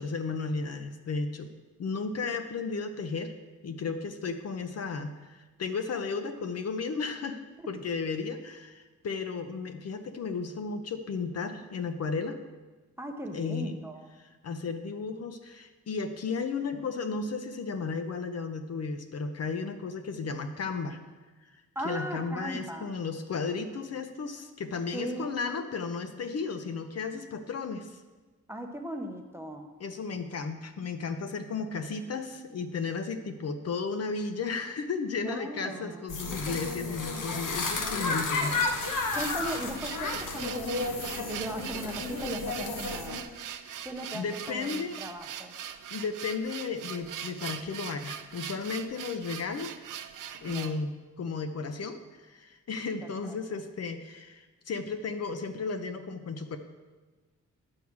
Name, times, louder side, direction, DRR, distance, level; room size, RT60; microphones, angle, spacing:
voice 1, 0.0-1.5 1.8-3.3 3.6-7.4 7.7-12.4 13.3-13.7 14.2-21.0 21.5-28.0 29.8-38.6 43.6-43.9 44.1-45.0 45.9-49.7 50.4-56.6, left 4 dB, 55° left, 8 dB, 0.7 m, -34 dB
voice 2, 13.0-14.1 21.8-22.9 24.9-25.3 28.5-29.7 35.2-36.0 39.1-40.9 41.2-43.2 43.8-45.5 50.4-50.7 53.2-53.4, right 1 dB, 10° right, 3 dB, 0.6 m, -38 dB
sound 1, 36.1-43.2, left 3 dB, 80° left, 1.1 m, -32 dB
sound 2, 38.7-50.8, right 9 dB, 90° right, 0.6 m, -41 dB
9.9 x 4.7 x 7.2 m, 1.3 s
wide cardioid pair, 175°, 31 cm